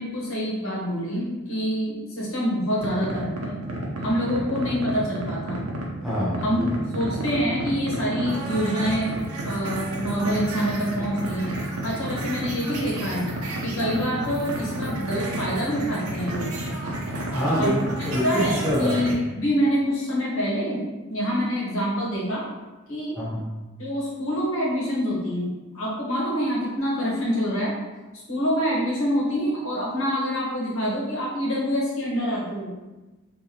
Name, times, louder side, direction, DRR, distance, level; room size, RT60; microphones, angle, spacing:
voice 1, 0.0-3.5 4.0-5.6 6.4-9.2 9.4-13.3 13.6-16.5 17.6-17.8 18.2-20.8 21.1-22.4 22.9-23.1 23.8-25.5 25.7-27.7 28.3-32.7, equal, 65° left, -6 dB, 1.2 m, -26 dB
sound 1, 2.8-19.1, right 1 dB, 75° right, 0.7 m, -31 dB
voice 2, 6.0-6.7 17.3-19.2 23.2-23.5, equal, ahead, -10 dB, 0.9 m, -26 dB
3.7 x 2.7 x 2.9 m, 1.1 s
head